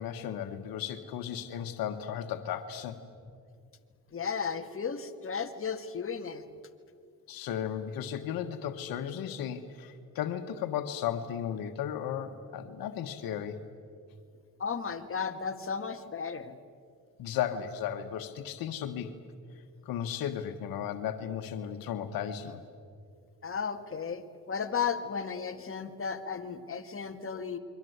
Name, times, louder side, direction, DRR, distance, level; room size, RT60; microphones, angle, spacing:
voice 1, 0.0-3.0 7.3-13.6 17.2-19.1 19.8-22.6, left 9 dB, 85° left, 8 dB, 1.5 m, -35 dB
voice 2, 4.1-6.4 14.6-16.5 23.4-27.6, left 6 dB, 40° left, 7 dB, 2.0 m, -34 dB
28.5 x 23.0 x 8.1 m, 2.3 s
cardioid pair, 70°, 34 cm